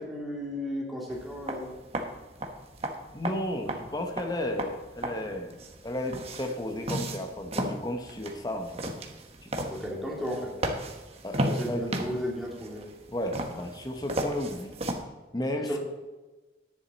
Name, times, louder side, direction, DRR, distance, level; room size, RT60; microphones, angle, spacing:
voice 1, 0.0-1.7 9.7-10.5 11.4-12.8 15.7-15.8, equal, ahead, -3 dB, 2.4 m, -34 dB
sound 1, 1.1-15.0, right 1 dB, 35° right, 1.1 m, -35 dB
voice 2, 3.1-8.8 9.4-9.7 11.2-12.1 13.1-14.8 15.3-15.8, left 1 dB, 20° left, 5 dB, 1.0 m, -33 dB
10.5 x 9.9 x 4.1 m, 1.2 s
head